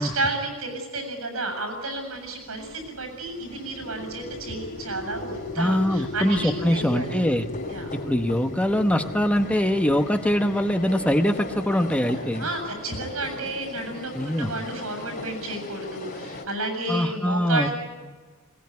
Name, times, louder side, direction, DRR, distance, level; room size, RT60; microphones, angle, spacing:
voice 1, 0.0-7.2 7.7-7.9 12.4-17.7, right 2 dB, 85° right, 5 dB, 7.5 m, -31 dB
sound 1, 2.1-16.5, left 2 dB, 45° left, 4.1 m, -40 dB
sound 2, 3.3-11.7, left 1 dB, 90° left, 2.8 m, -38 dB
voice 2, 5.6-7.5 7.9-12.5 14.1-14.5 16.9-17.7, equal, 5° left, 7 dB, 1.0 m, -23 dB
21.5 x 20.0 x 9.5 m, 1.4 s
head